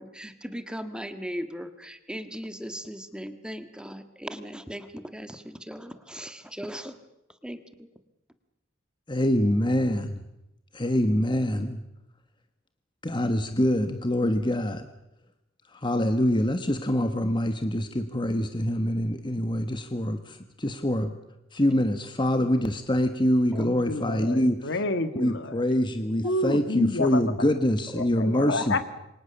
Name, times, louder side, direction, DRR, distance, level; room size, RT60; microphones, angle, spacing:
voice 1, 0.0-7.0 7.4-7.6 23.5-23.6 27.9-28.0, equal, 5° right, 9 dB, 1.6 m, -38 dB
voice 2, 9.1-10.2 10.7-11.8 13.0-14.9 15.7-21.2 21.5-24.6 25.1-28.8, left 1 dB, 25° left, 8 dB, 1.3 m, -25 dB
voice 3, 23.5-25.6 26.2-27.2 27.9-28.8, left 2 dB, 60° left, 11 dB, 1.6 m, -29 dB
28.0 x 24.0 x 7.0 m, 0.90 s
head